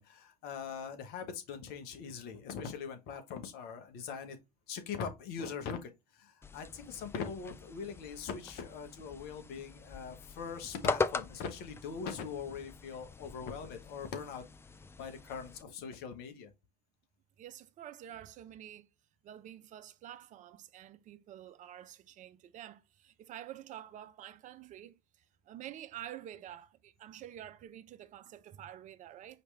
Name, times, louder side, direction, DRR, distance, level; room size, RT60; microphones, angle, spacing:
voice 1, 0.0-4.4 4.7-14.4 15.0-16.5, left 6 dB, 55° left, 1.2 m, -42 dB
sound 1, 6.4-15.6, left 4 dB, 15° left, 0.4 m, -41 dB
voice 2, 17.4-18.9 19.2-25.0 25.5-29.4, right 11 dB, 40° right, 0.6 m, -48 dB
4.9 x 3.2 x 3.3 m
hypercardioid pair, 70°, 19 cm